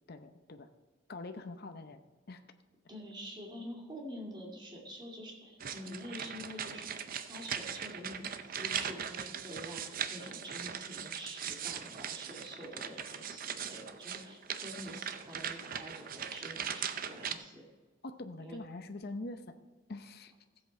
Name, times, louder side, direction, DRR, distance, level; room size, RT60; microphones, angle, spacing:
voice 1, 0.1-0.7 1.1-2.4 18.0-19.5 19.9-20.3, left 2 dB, 55° left, 8 dB, 0.7 m, -44 dB
voice 2, 2.9-6.9 7.1-8.2 8.6-17.6 18.4-18.6, equal, 25° right, -2 dB, 2.3 m, -47 dB
sound 1, 5.6-17.4, right 8 dB, 45° right, 0.6 m, -40 dB
15.0 x 7.8 x 4.3 m, 1.3 s
head